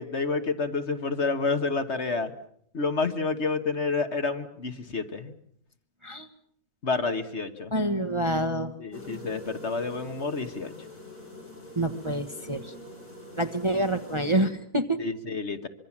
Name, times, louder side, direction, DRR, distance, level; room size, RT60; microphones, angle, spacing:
voice 1, 0.0-2.3 2.7-5.3 6.8-7.7 8.8-10.7 15.0-15.7, left 4 dB, 45° left, 8 dB, 1.7 m, -29 dB
voice 2, 7.7-8.7 11.8-12.7 13.4-15.0, right 1 dB, 20° right, 6 dB, 1.3 m, -27 dB
sound 1, 8.9-14.5, left 1 dB, 85° left, 7.3 m, -44 dB
25.0 x 23.5 x 7.4 m, 0.66 s
omnidirectional pair, 1.6 m